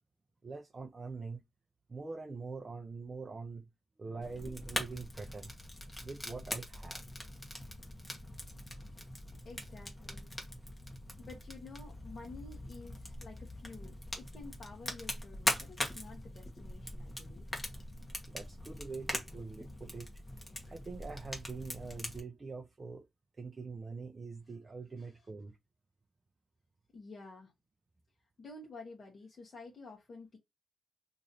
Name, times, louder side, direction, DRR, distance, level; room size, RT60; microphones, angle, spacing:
voice 1, 0.4-1.4 1.9-3.7 4.0-5.5 6.0-7.0 18.2-20.1 20.6-23.1 23.4-25.6, right 4 dB, 35° right, 0.6 m, -44 dB
Fire, 4.2-22.2, left 1 dB, 20° left, 1.2 m, -42 dB
voice 2, 9.4-10.3 11.2-17.5 24.5-24.6 25.0-25.2 26.9-27.5 28.4-30.4, left 3 dB, 40° left, 1.2 m, -51 dB
3.1 x 2.6 x 4.0 m
wide cardioid pair, 120°, 0 cm